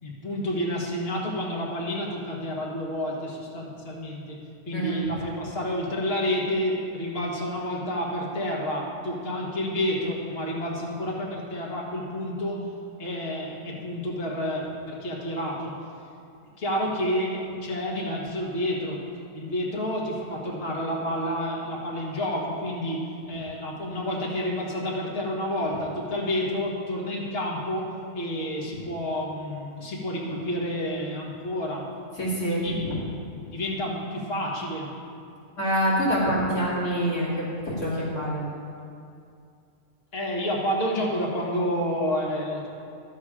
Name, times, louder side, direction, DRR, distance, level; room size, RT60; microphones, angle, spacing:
voice 1, 0.0-4.4 4.7-12.7 13.0-15.7 16.6-19.0 19.3-23.0 23.3-31.9 32.5-33.0 33.5-34.9 40.1-42.7, equal, 40° left, -3 dB, 1.8 m, -29 dB
voice 2, 4.7-5.1 32.2-33.0 35.6-38.5, equal, 70° left, -6 dB, 3.0 m, -26 dB
11.5 x 7.5 x 4.9 m, 2.4 s
omnidirectional pair, 1.6 m